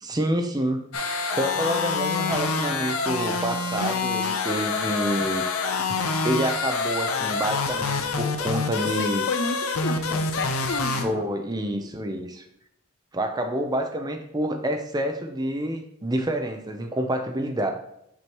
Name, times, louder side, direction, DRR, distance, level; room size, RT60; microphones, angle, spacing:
voice 1, 0.0-5.5 6.2-9.3 11.0-12.4 13.1-17.7, right 1 dB, 20° right, 6 dB, 0.6 m, -28 dB
sound 1, 0.9-11.0, left 4 dB, 85° left, 0.8 m, -26 dB
voice 2, 8.8-11.4, left 4 dB, 55° left, 9 dB, 0.5 m, -32 dB
6.1 x 6.0 x 3.0 m, 0.77 s
head